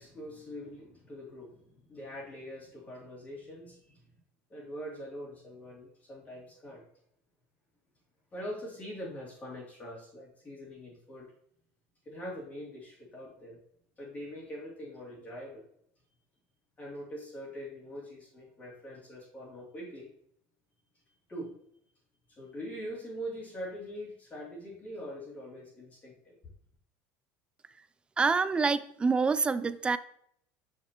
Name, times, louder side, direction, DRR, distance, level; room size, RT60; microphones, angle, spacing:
voice 1, 0.0-4.2 4.5-6.8 8.3-11.3 12.0-13.6 14.0-15.6 16.8-20.1 21.3-21.5 22.3-26.4, equal, 25° left, -5 dB, 2.7 m, -43 dB
voice 2, 28.2-30.0, right 4 dB, 15° right, 14 dB, 0.3 m, -26 dB
6.3 x 5.9 x 3.0 m, 0.68 s
supercardioid pair, 130°, 6 cm